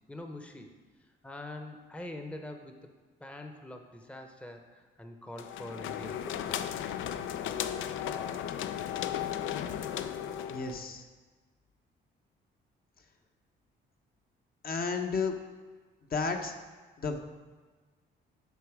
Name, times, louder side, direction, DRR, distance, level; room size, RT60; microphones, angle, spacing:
voice 1, 0.1-0.7 1.2-2.7 3.2-6.7, left 1 dB, 5° left, 4 dB, 0.7 m, -44 dB
sound 1, 5.4-10.9, left 10 dB, 80° left, 0.5 m, -35 dB
voice 2, 10.5-11.0 14.6-15.4 16.1-16.5 17.0-17.2, left 4 dB, 50° left, 4 dB, 0.9 m, -32 dB
8.2 x 5.9 x 4.8 m, 1.4 s
cardioid pair, 90°, 20 cm